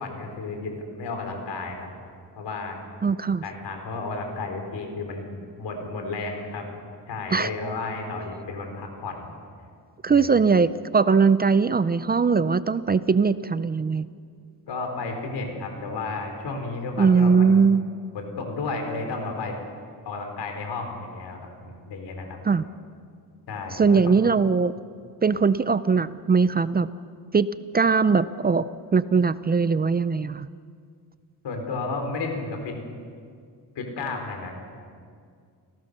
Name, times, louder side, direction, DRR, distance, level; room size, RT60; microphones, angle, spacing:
voice 1, 0.0-1.9 2.4-2.8 3.4-6.7 7.1-9.3 10.1-10.3 14.7-17.5 18.1-19.6 20.1-22.4 23.5-24.1 31.4-32.7 33.8-34.5, left 3 dB, 90° left, 4 dB, 4.3 m, -32 dB
voice 2, 3.0-3.4 7.3-7.5 10.0-14.1 17.0-17.8 22.4-22.6 23.7-24.7 25.2-26.9 27.3-28.7 28.9-30.5, right 5 dB, 25° right, 15 dB, 0.4 m, -20 dB
28.5 x 17.0 x 6.7 m, 2.2 s
cardioid pair, 125°, 40 cm